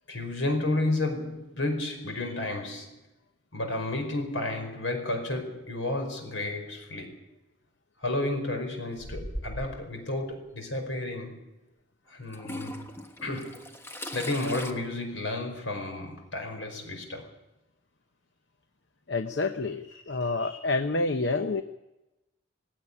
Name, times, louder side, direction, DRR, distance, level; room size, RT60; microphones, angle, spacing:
voice 1, 0.1-3.0 3.5-7.2 8.0-11.4 12.1-12.9 13.2-13.7 14.1-17.3 19.6-20.6, left 2 dB, 80° left, 4 dB, 5.2 m, -32 dB
Toilet flush / Trickle dribble, 9.0-9.9 10.9-11.0 12.3-14.7, equal, 10° left, 1.3 m, -39 dB
voice 2, 19.1-21.6, left 3 dB, 60° left, 8 dB, 0.9 m, -28 dB
18.5 x 16.5 x 10.0 m, 0.98 s
head